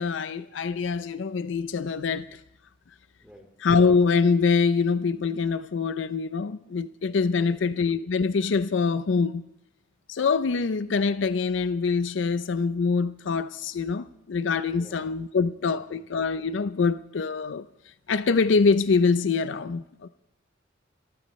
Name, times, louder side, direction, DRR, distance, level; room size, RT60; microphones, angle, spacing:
voice 1, 0.0-2.4 3.6-9.4 10.1-17.7 18.1-19.8, left 5 dB, 65° left, 0.5 m, -24 dB
voice 2, 3.2-3.5 7.2-7.8 14.7-15.0 15.4-16.0, equal, 5° right, 3.4 m, -52 dB
26.0 x 13.5 x 3.2 m
head